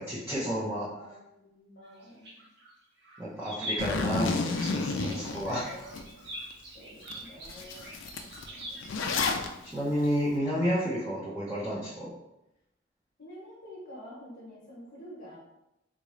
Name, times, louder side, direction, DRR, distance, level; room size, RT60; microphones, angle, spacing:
voice 1, 0.0-0.9 3.2-5.7 9.7-12.1, equal, 10° right, -9 dB, 0.6 m, -31 dB
voice 2, 0.9-2.5 5.0-6.0 6.3-6.4 6.7-8.8 13.2-15.4, equal, 55° left, -7 dB, 0.9 m, -49 dB
sound 1, 1.8-2.7 3.0-9.3, equal, 65° right, 0.9 m, -43 dB
Zipper (clothing), 3.8-6.0 6.5-6.6 7.1-7.2 7.4-9.5, left 4 dB, 90° left, 0.4 m, -30 dB
3.7 x 2.5 x 3.0 m, 0.88 s
head